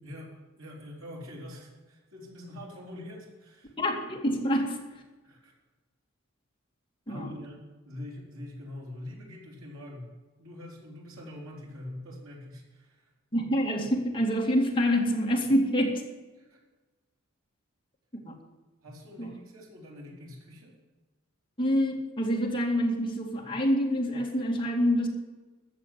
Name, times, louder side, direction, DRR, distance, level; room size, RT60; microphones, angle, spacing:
voice 1, 0.0-3.7 5.2-5.5 7.1-7.6 7.8-10.1 10.4-13.1 16.4-16.6 18.8-20.7, left 1 dB, 75° right, -2 dB, 3.8 m, -44 dB
voice 2, 3.8-4.8 7.1-7.3 13.3-16.0 18.3-18.4 19.2-19.3 21.6-25.1, equal, 25° left, 0 dB, 2.4 m, -26 dB
14.0 x 7.0 x 9.3 m, 1.2 s
head